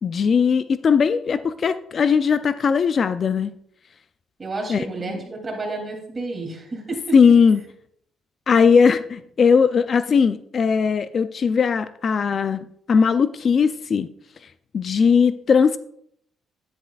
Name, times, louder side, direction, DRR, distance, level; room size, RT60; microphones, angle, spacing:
voice 1, 0.0-3.5 4.7-4.8 7.1-7.6 8.5-14.1 14.7-15.8, left 6 dB, 50° left, 13 dB, 0.4 m, -18 dB
voice 2, 4.4-7.2, right 3 dB, 30° right, 1 dB, 2.9 m, -31 dB
10.0 x 9.9 x 2.4 m, 0.70 s
cardioid pair, 90°, 0 cm